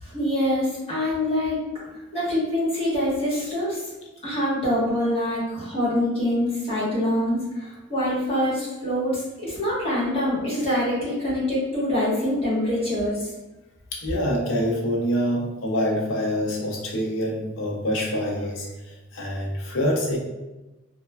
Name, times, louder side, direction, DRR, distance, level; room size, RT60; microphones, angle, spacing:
voice 1, 0.0-1.6 2.1-3.9 4.2-13.2, left 1 dB, 30° left, -8 dB, 1.2 m, -25 dB
voice 2, 13.9-20.2, equal, 75° left, -2 dB, 0.6 m, -26 dB
3.1 x 2.1 x 2.3 m, 1.1 s
head